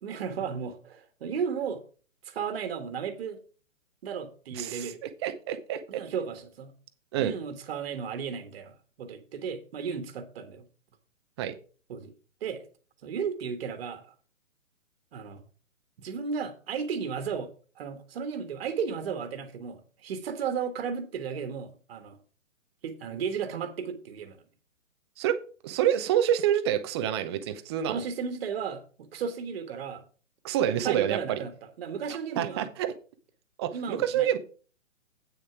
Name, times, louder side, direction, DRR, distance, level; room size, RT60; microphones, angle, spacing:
voice 1, 0.0-1.8 2.2-3.4 4.0-5.0 5.9-6.7 7.2-10.6 11.9-12.1 12.4-12.6 13.0-14.1 15.1-15.4 16.0-17.5 17.8-22.2 22.8-24.4 27.9-30.0 30.8-31.5 31.8-32.7 33.7-34.3, right 6 dB, 50° right, 8 dB, 1.5 m, -34 dB
voice 2, 4.5-6.0 7.1-7.3 11.4-11.6 25.2-25.4 25.6-28.0 30.4-31.4 32.4-32.9 33.6-34.4, right 10 dB, 20° right, 10 dB, 0.6 m, -27 dB
8.8 x 6.5 x 4.8 m, 0.39 s
hypercardioid pair, 140°, 39 cm